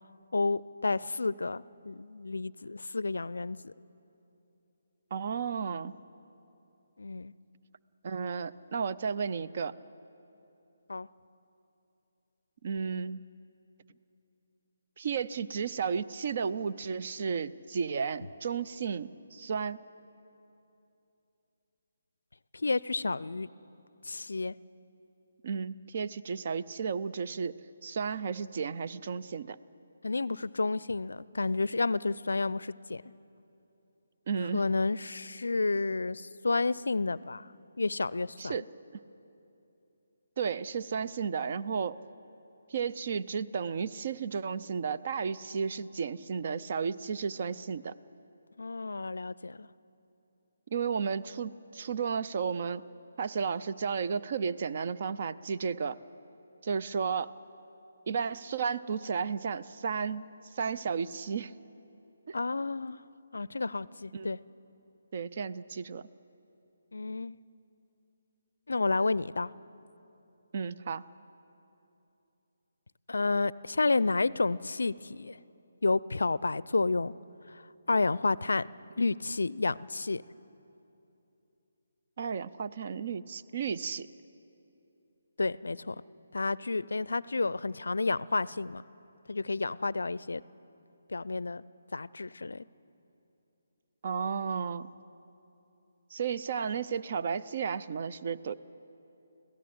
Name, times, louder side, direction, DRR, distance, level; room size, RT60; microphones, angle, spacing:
voice 1, 0.3-3.7 7.0-7.3 10.9-11.1 22.5-23.5 24.1-24.5 30.0-33.0 34.5-37.5 37.8-38.6 48.6-49.7 62.3-63.0 63.3-64.4 66.9-67.4 68.7-69.5 73.1-75.4 75.8-77.1 77.9-78.7 79.0-80.2 85.4-86.0 86.3-88.8 89.3-90.4 91.1-91.6 91.9-92.6, left 3 dB, 70° left, 21 dB, 0.4 m, -30 dB
voice 2, 5.1-5.9 8.0-9.7 12.6-13.3 15.0-19.8 25.4-27.6 27.8-29.6 34.3-34.6 38.4-38.7 40.4-42.0 42.7-48.0 50.7-52.8 53.2-56.0 56.6-57.3 58.1-60.2 60.5-61.5 62.3-62.4 64.1-64.4 65.1-66.1 70.5-71.0 82.2-84.1 94.0-94.9 96.1-98.5, right 6 dB, 45° right, 12 dB, 0.5 m, -33 dB
25.0 x 16.5 x 7.9 m, 2.9 s
figure-of-eight pair, 145°, 0 cm